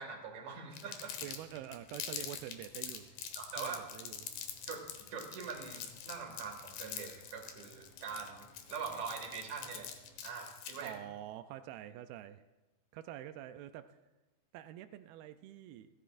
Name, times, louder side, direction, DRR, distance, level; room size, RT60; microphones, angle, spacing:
voice 1, 0.0-1.2 3.4-3.8 4.7-4.8 5.1-9.9 10.2-11.0, right 6 dB, 50° right, 2 dB, 2.9 m, -43 dB
Crumpling crinkling, 0.7-11.0, left 9 dB, 75° left, 2.9 m, -44 dB
sound 1, 1.0-10.2, left 2 dB, 50° left, 3.1 m, -63 dB
voice 2, 1.2-3.1 3.6-4.3 10.8-12.4 12.9-14.0 14.5-15.9, right 12 dB, 90° right, 9 dB, 2.1 m, -46 dB
29.5 x 11.0 x 2.5 m, 1.1 s
omnidirectional pair, 4.9 m